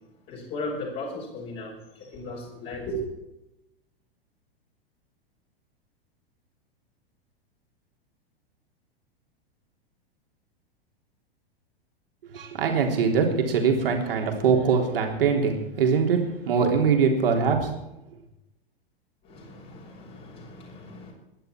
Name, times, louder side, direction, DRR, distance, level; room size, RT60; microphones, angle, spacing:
voice 1, 0.3-1.7 2.1-3.0 19.3-21.1, left 1 dB, 35° left, -3 dB, 6.3 m, -36 dB
voice 2, 12.3-16.2 16.4-17.7, right 5 dB, 65° right, 2 dB, 3.6 m, -22 dB
21.5 x 11.5 x 4.6 m, 0.91 s
figure-of-eight pair, 95°, 31 cm